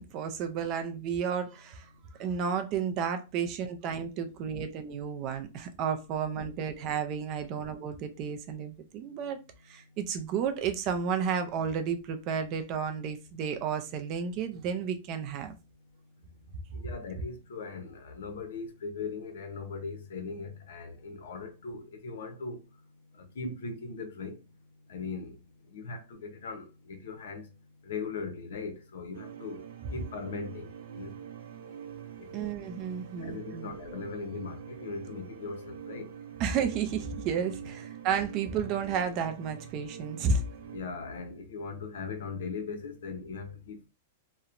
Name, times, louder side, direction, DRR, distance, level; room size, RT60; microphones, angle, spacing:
voice 1, 0.0-1.9 2.2-9.4 9.7-15.6 32.3-33.7 36.4-40.4, right 6 dB, 30° right, 0.4 m, -32 dB
voice 2, 16.7-22.7 23.1-24.4 24.9-25.4 25.7-27.5 27.8-29.6 29.9-31.1 32.2-32.3 33.2-36.1 37.6-37.7 40.7-43.9, left 4 dB, 70° left, 0.7 m, -39 dB
sound 1, 29.1-40.8, right 9 dB, 70° right, 0.6 m, -45 dB
2.8 x 2.1 x 2.5 m
supercardioid pair, 170°, 0 cm